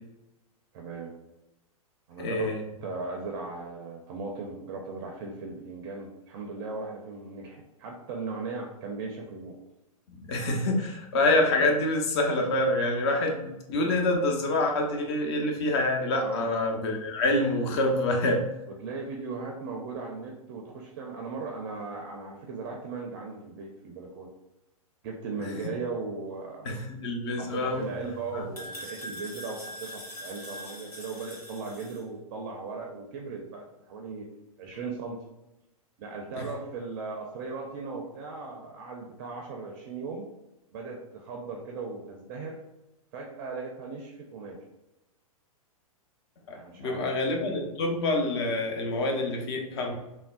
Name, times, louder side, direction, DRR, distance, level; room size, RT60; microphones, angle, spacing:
voice 1, 0.7-1.1 2.1-2.5 2.8-9.6 16.2-16.5 18.8-24.3 25.0-26.7 27.3-34.3 34.6-35.2 36.0-40.2 40.7-42.6 43.1-44.6 46.5-47.1, right 4 dB, 35° right, 1 dB, 0.4 m, -37 dB
voice 2, 2.2-2.6 10.2-18.5 25.6-25.7 26.6-27.8 28.3-28.4 36.4-36.5 46.5-50.0, left 2 dB, 45° left, 2 dB, 0.7 m, -26 dB
sound 1, 27.4-32.0, equal, 90° left, 1.3 m, -43 dB
3.5 x 2.1 x 2.3 m, 0.95 s
figure-of-eight pair, 105°, 19 cm